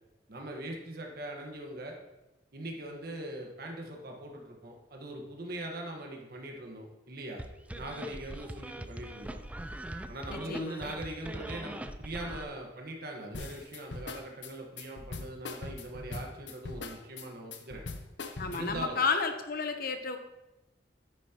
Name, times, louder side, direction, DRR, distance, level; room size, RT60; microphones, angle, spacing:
voice 1, 0.3-1.9 2.5-7.4 7.7-9.4 10.1-17.8 18.5-19.0, right 1 dB, 60° right, 1 dB, 1.5 m, -41 dB
sound 1, 7.4-12.4, right 1 dB, 10° right, 0.4 m, -41 dB
voice 2, 10.3-10.9 18.4-20.2, left 4 dB, 55° left, 7 dB, 0.9 m, -32 dB
sound 2, 13.3-18.9, left 3 dB, 85° left, 0.8 m, -41 dB
9.6 x 8.5 x 3.0 m, 0.99 s
head